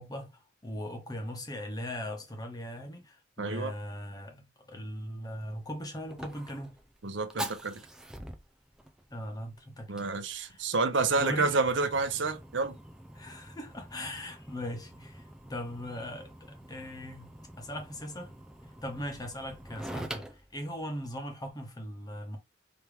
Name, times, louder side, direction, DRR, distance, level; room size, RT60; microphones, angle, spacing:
voice 1, 0.0-6.7 9.1-10.7 10.9-11.6 13.1-17.3 17.6-18.3 18.8-22.4, left 1 dB, 20° left, 1.1 m, -39 dB
voice 2, 3.4-3.7 7.0-7.7 9.9-12.7, right 3 dB, 70° right, 0.8 m, -29 dB
Fire, 5.3-21.5, equal, 5° right, 0.4 m, -46 dB
5.1 x 3.0 x 3.4 m
head